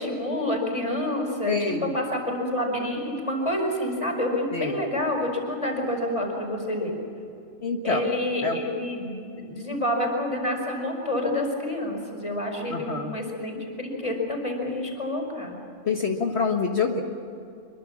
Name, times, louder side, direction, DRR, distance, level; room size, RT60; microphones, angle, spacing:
voice 1, 0.0-6.9 7.8-15.5, left 1 dB, 25° left, 1 dB, 5.1 m, -28 dB
voice 2, 1.5-1.9 4.5-4.8 7.6-8.0 8.4-8.6 12.7-13.1 15.8-17.0, left 5 dB, 55° left, 2 dB, 1.7 m, -26 dB
25.0 x 23.0 x 7.4 m, 2.7 s
omnidirectional pair, 1.4 m